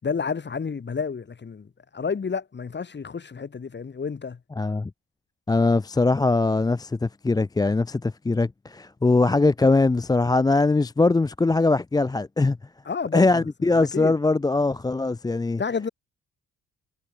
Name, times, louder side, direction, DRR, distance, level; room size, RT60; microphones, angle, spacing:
voice 1, 0.0-4.4 12.8-14.2 15.6-15.9, left 5 dB, 35° left, 4.1 m, -30 dB
voice 2, 4.6-4.9 5.5-12.6 13.1-15.6, left 3 dB, 15° left, 0.5 m, -21 dB
cardioid pair, 90°, 30 cm